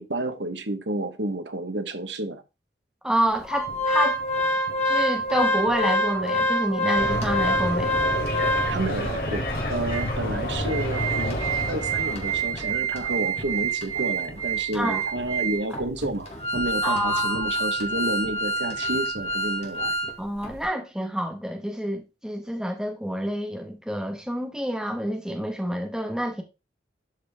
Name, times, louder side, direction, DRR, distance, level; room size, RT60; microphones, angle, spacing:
voice 1, 0.0-2.4 8.7-11.4 11.7-19.9, right 1 dB, 90° right, 1.3 m, -30 dB
voice 2, 3.0-4.2 4.8-8.0 14.7-15.0 16.8-17.5 20.2-26.4, equal, 5° right, 1.5 m, -28 dB
Organ, 3.5-9.0 9.6-9.7 9.9-10.1 10.5-20.1 20.4-20.6, right 1 dB, 35° left, 2.1 m, -26 dB
sound 1, 6.9-12.7, left 1 dB, 55° left, 2.6 m, -29 dB
12.0 x 4.9 x 3.6 m
head